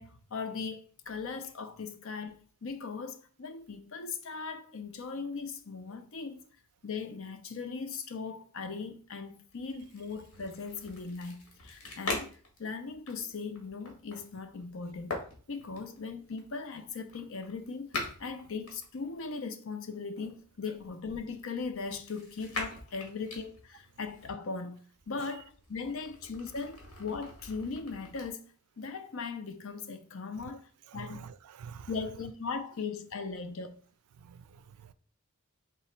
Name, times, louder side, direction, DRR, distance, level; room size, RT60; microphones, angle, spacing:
voice 1, 0.0-6.4 6.8-15.1 15.5-24.8 25.1-28.4 28.8-31.2 31.9-33.8, left 4 dB, 60° left, 0.6 m, -39 dB
sound 1, 9.5-19.4 20.2-24.3 24.9-28.3, left 2 dB, 80° left, 1.5 m, -43 dB
voice 2, 30.9-31.9 34.2-34.9, right 7 dB, 90° right, 0.3 m, -48 dB
3.7 x 2.9 x 4.3 m
head